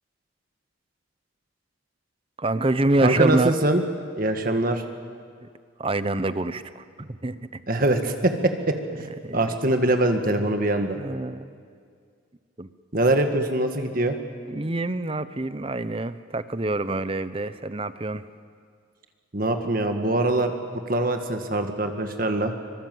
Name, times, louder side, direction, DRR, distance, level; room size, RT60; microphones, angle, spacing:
voice 1, 2.4-3.5 5.4-5.5 5.8-7.6 9.0-9.5 11.0-11.5 12.6-12.7 14.5-18.2, right 2 dB, 30° right, 13 dB, 0.8 m, -26 dB
voice 2, 3.0-3.8 4.2-4.8 7.7-8.8 9.3-11.0 12.9-14.2 19.3-22.5, right 2 dB, 45° right, 6 dB, 1.7 m, -23 dB
25.0 x 23.5 x 7.8 m, 2.1 s
head